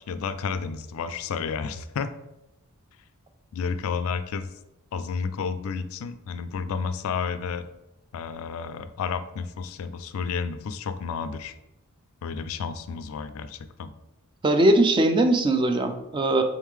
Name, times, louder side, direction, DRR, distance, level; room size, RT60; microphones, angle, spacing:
voice 1, 0.0-2.1 3.5-4.5 4.9-7.7 8.1-11.5 12.2-13.9, left 5 dB, 65° left, 13 dB, 0.3 m, -31 dB
voice 2, 14.4-16.4, right 1 dB, 20° right, 7 dB, 0.3 m, -20 dB
3.6 x 3.5 x 3.2 m, 0.92 s
head